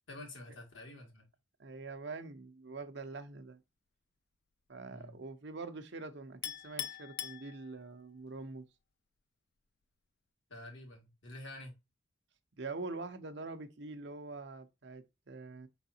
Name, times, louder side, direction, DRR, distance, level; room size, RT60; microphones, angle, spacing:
voice 1, 0.1-1.3 4.9-5.2 10.5-11.7, left 1 dB, 85° left, 2.1 m, -48 dB
voice 2, 1.6-3.6 4.7-8.7 12.6-15.7, right 3 dB, 65° right, 0.8 m, -44 dB
Chink clink, 6.4-8.1, left 12 dB, 60° left, 0.3 m, -42 dB
4.8 x 4.0 x 2.7 m
head